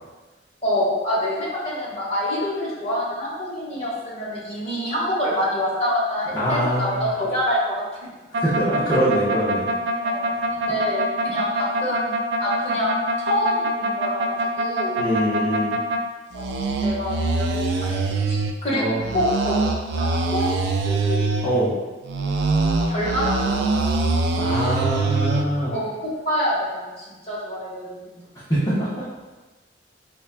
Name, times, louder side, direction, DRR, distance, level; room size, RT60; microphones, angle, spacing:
voice 1, 0.6-8.1 9.1-9.2 10.0-15.0 16.3-20.5 20.8-21.3 22.9-23.9 25.7-28.2, equal, 35° left, -7 dB, 1.2 m, -27 dB
voice 2, 6.3-7.2 8.4-9.7 15.0-15.8 18.7-19.2 21.4-21.8 24.4-25.8 28.5-28.9, equal, 20° left, -12 dB, 0.7 m, -23 dB
sound 1, 8.3-16.0 16.3-18.5 19.0-21.5 22.1-25.4, right 2 dB, 65° right, 0.3 m, -23 dB
5.5 x 2.2 x 2.4 m, 1.2 s
head